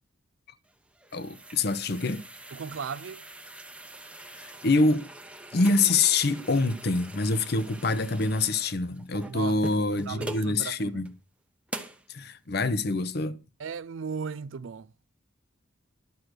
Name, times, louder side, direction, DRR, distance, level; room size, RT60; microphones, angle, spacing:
sound 1, 0.7-10.5 11.0-11.1 11.7-12.1, right 1 dB, 5° right, 0.9 m, -43 dB
voice 1, 1.1-2.2 4.3-5.1 5.5-11.1 12.1-13.4, left 3 dB, 55° left, 0.8 m, -26 dB
voice 2, 2.5-3.3 9.3-9.6 10.1-11.0 13.6-14.9, right 6 dB, 80° right, 0.5 m, -36 dB
12.0 x 6.5 x 6.2 m
head